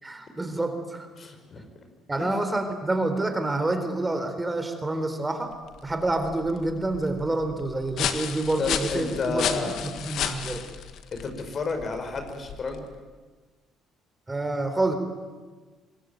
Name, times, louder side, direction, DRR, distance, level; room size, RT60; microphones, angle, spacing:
voice 1, 0.0-1.1 2.1-5.5 5.8-10.6 14.3-14.9, right 2 dB, 20° right, 7 dB, 3.8 m, -28 dB
voice 2, 1.2-1.6 2.2-2.3 8.6-9.8 11.1-12.8, left 4 dB, 45° left, 6 dB, 5.2 m, -31 dB
sound 1, 5.5-13.0, left 9 dB, 65° left, 1.8 m, -34 dB
25.0 x 21.0 x 9.2 m, 1.3 s
hypercardioid pair, 60°, 0 cm